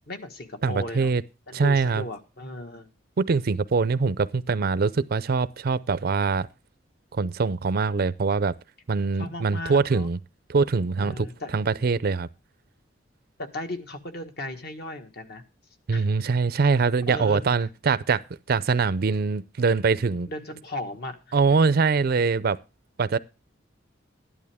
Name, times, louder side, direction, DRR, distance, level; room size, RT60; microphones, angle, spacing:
voice 1, 0.1-1.1 1.5-2.9 9.2-10.1 11.0-11.6 13.4-15.4 15.9-16.1 17.1-17.4 20.3-21.2, left 1 dB, 60° left, 1.6 m, -36 dB
voice 2, 0.6-1.2 1.5-2.0 3.2-6.5 7.1-8.5 8.9-10.2 10.5-11.3 11.5-12.3 15.9-18.2 18.5-20.3 21.3-22.6 23.0-23.2, right 4 dB, 50° right, 0.5 m, -23 dB
12.5 x 11.0 x 3.5 m
head